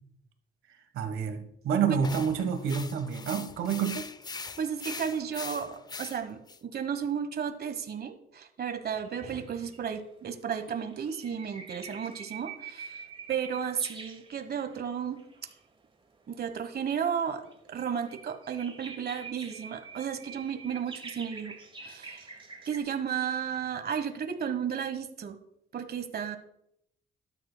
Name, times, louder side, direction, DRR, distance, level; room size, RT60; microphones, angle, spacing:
voice 1, 0.9-4.1, right 7 dB, 85° right, 8 dB, 1.2 m, -28 dB
sound 1, 2.0-6.6, left 4 dB, 20° left, 0.4 m, -42 dB
voice 2, 4.6-13.0 13.3-15.2 16.3-17.4 17.7-21.5 21.8-22.3 22.7-25.4 25.7-26.4, right 7 dB, 50° right, 8 dB, 1.2 m, -33 dB
sound 2, 9.0-10.0 10.6-14.8 15.2-15.8 16.6-22.8, right 5 dB, 25° right, 1.3 m, -46 dB
12.5 x 9.3 x 2.2 m, 0.76 s
cardioid pair, 90°, 20 cm